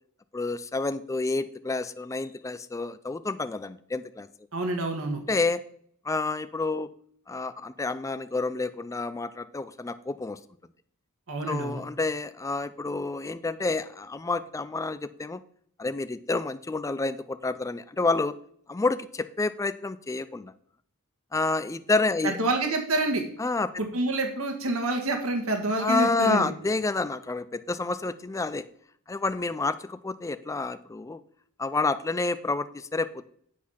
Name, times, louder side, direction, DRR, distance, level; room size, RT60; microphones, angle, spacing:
voice 1, 0.3-4.3 5.3-5.6 6.0-6.9 7.3-10.4 11.5-15.4 15.8-18.3 18.7-20.5 21.3-22.4 23.4-23.7 25.8-28.7 29.1-31.2 31.6-33.3, left 3 dB, 15° left, 12 dB, 0.3 m, -29 dB
voice 2, 4.5-5.2 11.3-11.8 22.2-23.2 23.8-26.5, right 2 dB, 65° right, 4 dB, 1.6 m, -27 dB
8.3 x 6.3 x 5.7 m, 0.62 s
head